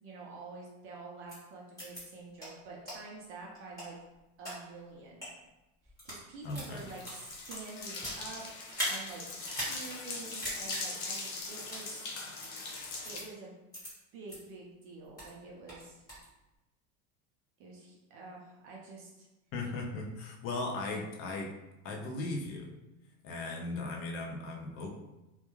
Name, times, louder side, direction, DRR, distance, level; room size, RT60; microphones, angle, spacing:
voice 1, 0.0-4.0 4.4-5.3 5.8-12.0 13.0-13.5 14.1-16.0 17.6-19.3, right 3 dB, 40° right, -2 dB, 0.5 m, -48 dB
sound 1, 1.3-1.4 1.8-2.0 2.4-2.5 2.9-3.0 3.5-4.5 5.1-5.3 5.9-6.2 6.5-8.2 8.7-9.0 9.4-9.8 10.1-10.2 10.4-10.8 11.6-11.9 12.4-12.5 13.0-13.2 13.7-13.9 14.3-14.4 14.8-15.3 15.7-16.3, equal, 10° left, 1.3 m, -39 dB
sound 2, 6.4-13.2, left 3 dB, 70° left, 0.7 m, -41 dB
voice 2, 6.4-6.9 19.5-21.5 21.8-22.7 23.2-25.0, left 2 dB, 40° left, 2 dB, 0.4 m, -37 dB
2.2 x 2.2 x 2.9 m, 0.98 s
cardioid pair, 160°, 36 cm